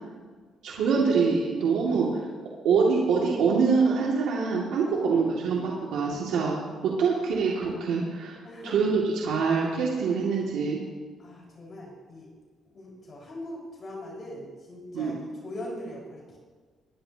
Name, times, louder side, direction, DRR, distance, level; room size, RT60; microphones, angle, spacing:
voice 1, 0.6-2.1 2.6-6.6 6.8-8.4 8.6-10.8 14.9-15.1, right 5 dB, 85° right, -4 dB, 2.2 m, -24 dB
voice 2, 1.7-2.2 4.9-5.2 8.4-8.9 11.2-12.3 12.7-15.1 15.4-16.4, left 1 dB, 45° left, -3 dB, 4.8 m, -41 dB
21.5 x 10.5 x 2.9 m, 1.5 s
cardioid pair, 90°, 0 cm